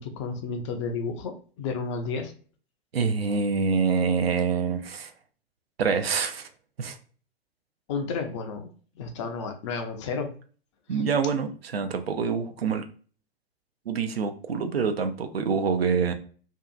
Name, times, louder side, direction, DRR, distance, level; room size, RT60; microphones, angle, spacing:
voice 1, 0.0-2.3 7.9-8.7 9.0-10.3 10.9-11.0, left 4 dB, 30° left, 0.4 m, -32 dB
voice 2, 2.9-5.1 5.8-6.5 6.8-7.0 10.9-12.8 13.9-16.1, right 5 dB, 75° right, 0.5 m, -26 dB
2.7 x 2.3 x 2.3 m
figure-of-eight pair, 100°, 30 cm